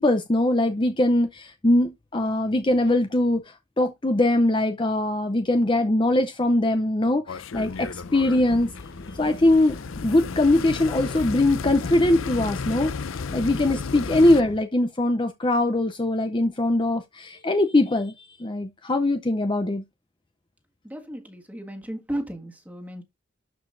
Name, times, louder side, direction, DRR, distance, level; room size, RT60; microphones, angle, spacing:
voice 1, 0.0-8.7 9.2-9.8 10.0-19.8, left 1 dB, 25° left, 0.6 m, -22 dB
sound 1, 7.3-14.4, left 5 dB, 85° left, 0.5 m, -33 dB
sound 2, 7.5-14.6, left 2 dB, 60° left, 1.0 m, -40 dB
voice 2, 20.8-23.0, right 1 dB, 10° right, 1.6 m, -34 dB
12.0 x 5.0 x 2.6 m
head